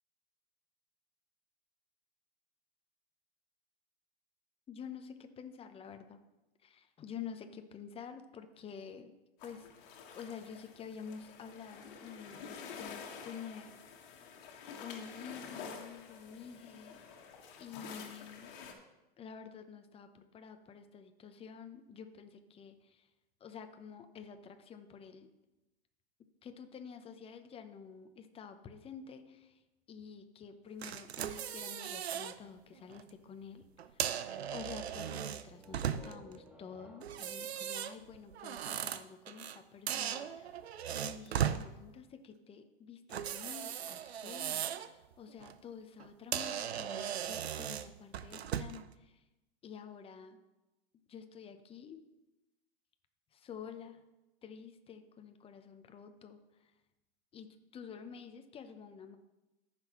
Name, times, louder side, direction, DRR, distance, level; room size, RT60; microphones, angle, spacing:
voice 1, 4.7-6.2 6.6-9.1 9.4-13.9 14.8-17.0 17.6-18.6 19.2-23.1 23.4-25.3 26.4-29.6 29.9-34.2 34.5-40.6 41.0-49.2 49.6-50.4 51.1-52.0 53.3-54.0 54.4-56.7 57.3-57.5 57.7-59.2, left 7 dB, 20° left, 8 dB, 0.7 m, -49 dB
sound 1, 9.4-18.7, left 6 dB, 55° left, 1.6 m, -49 dB
sound 2, 30.8-32.4 32.8-33.0 33.8-36.3 37.0-39.6 39.9-41.6 43.1-44.9 45.3-45.5 46.0-46.1 46.3-48.9, right 9 dB, 90° right, 0.6 m, -38 dB
sound 3, 35.5-39.1, equal, 5° right, 1.0 m, -57 dB
14.5 x 6.0 x 3.1 m, 1.0 s
hypercardioid pair, 115°, 31 cm